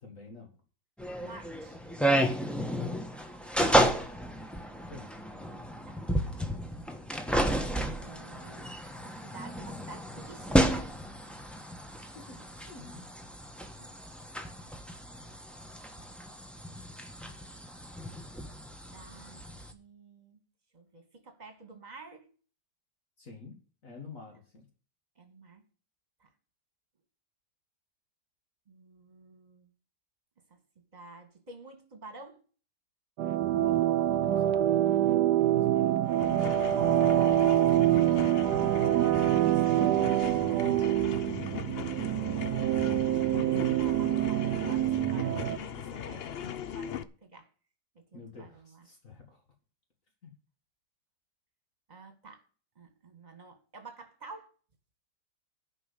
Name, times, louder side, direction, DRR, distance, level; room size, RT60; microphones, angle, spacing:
voice 1, 0.0-0.5 2.6-3.0 4.8-5.1 12.1-13.1 23.2-23.6 23.8-24.7 33.5-33.9 34.2-34.8 35.5-38.7 41.1-42.1 43.1-43.3 48.1-49.4 50.2-50.3, left 3 dB, 50° left, 2.3 m, -48 dB
sound 1, 1.0-19.7, right 1 dB, ahead, 1.1 m, -32 dB
voice 2, 1.2-1.8 3.5-4.0 5.9-6.5 7.7-8.7 9.0-10.9 13.8-14.0 14.6-14.7 18.9-19.4 19.7-20.4 20.7-22.3 25.2-25.6 26.2-26.3 28.7-29.7 30.9-32.4 35.5-35.6 39.3-40.5 43.2-47.5 48.0-48.9 51.9-52.4 52.8-54.5, right 3 dB, 25° right, 2.1 m, -50 dB
sound 2, 33.2-45.6, right 12 dB, 75° right, 1.3 m, -26 dB
sound 3, 36.0-47.0, left 9 dB, 65° left, 0.6 m, -39 dB
10.5 x 5.5 x 8.0 m
omnidirectional pair, 1.8 m